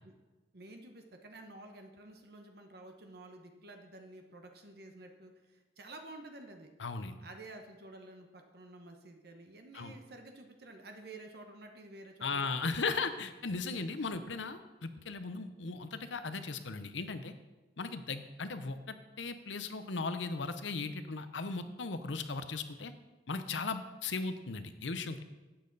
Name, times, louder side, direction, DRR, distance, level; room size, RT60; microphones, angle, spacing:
voice 1, 0.5-6.7 7.2-12.8, right 2 dB, 60° right, 4 dB, 1.1 m, -51 dB
voice 2, 6.8-7.2 9.7-9.9 12.2-17.3 17.8-22.9 23.3-25.2, left 4 dB, 90° left, 10 dB, 0.8 m, -37 dB
12.0 x 8.7 x 4.1 m, 1.2 s
head